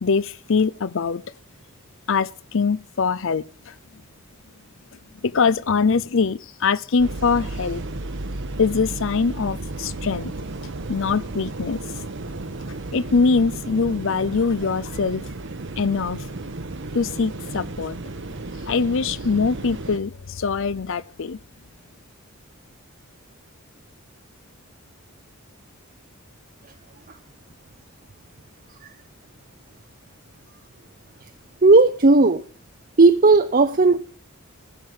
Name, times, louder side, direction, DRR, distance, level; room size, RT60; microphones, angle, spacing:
voice 1, 0.0-1.2 2.1-3.7 5.2-7.8 8.6-10.3 10.9-11.8 12.9-15.2 15.8-16.2 16.9-18.0 18.7-21.4, left 5 dB, 60° left, 0.6 m, -23 dB
sound 1, 7.0-20.0, right 2 dB, 60° right, 1.0 m, -33 dB
voice 2, 31.6-32.4 33.0-34.0, right 3 dB, 40° right, 0.6 m, -14 dB
15.5 x 6.6 x 7.5 m
head